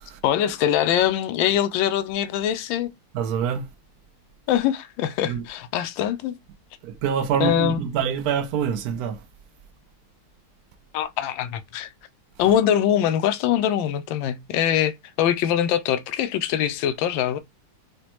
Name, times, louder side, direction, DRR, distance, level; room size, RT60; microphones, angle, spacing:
voice 1, 0.2-2.9 4.5-6.3 7.4-7.8 10.9-11.9 12.4-17.4, left 10 dB, 75° left, 1.2 m, -23 dB
voice 2, 3.1-3.7 5.3-5.4 6.8-9.2, right 8 dB, 70° right, 0.9 m, -25 dB
5.0 x 2.2 x 2.9 m
omnidirectional pair, 2.3 m